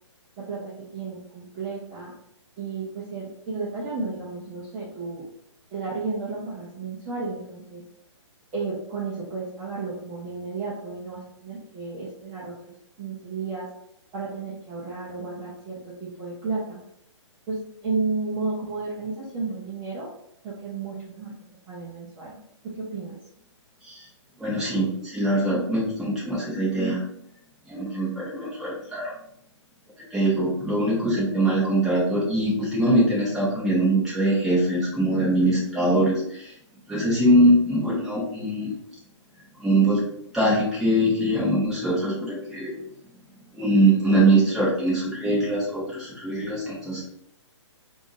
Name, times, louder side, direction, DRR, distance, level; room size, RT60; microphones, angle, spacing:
voice 1, 0.4-2.1 2.6-5.3 5.7-7.8 8.5-12.5 13.0-13.7 14.1-16.8 17.5-20.1 20.4-21.3 21.7-22.4 22.6-23.2, right 4 dB, 20° right, -7 dB, 0.8 m, -32 dB
voice 2, 24.4-27.0 27.7-29.1 30.1-36.5 36.9-38.7 39.6-40.0 40.3-42.7 43.5-47.0, right 1 dB, 5° right, -8 dB, 1.2 m, -22 dB
3.4 x 2.7 x 4.1 m, 0.73 s
hypercardioid pair, 155°, 16 cm